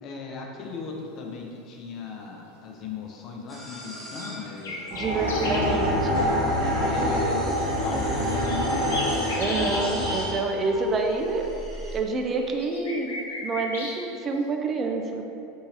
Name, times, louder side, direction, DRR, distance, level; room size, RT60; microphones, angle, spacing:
voice 1, 0.0-5.6 6.7-7.4 7.8-8.9, left 4 dB, 45° left, 0 dB, 0.5 m, -37 dB
sound 1, 3.5-12.0, right 1 dB, 10° left, 1.0 m, -38 dB
sound 2, 4.2-5.7 8.4-9.9 12.2-14.0, left 1 dB, 90° left, 0.6 m, -34 dB
voice 2, 4.9-6.3 9.4-11.6 11.9-15.2, right 3 dB, 30° right, 3 dB, 0.3 m, -28 dB
sound 3, 4.9-10.1, equal, 75° right, 1.0 m, -25 dB
3.6 x 2.8 x 2.8 m, 2.6 s
hypercardioid pair, 95°, 0 cm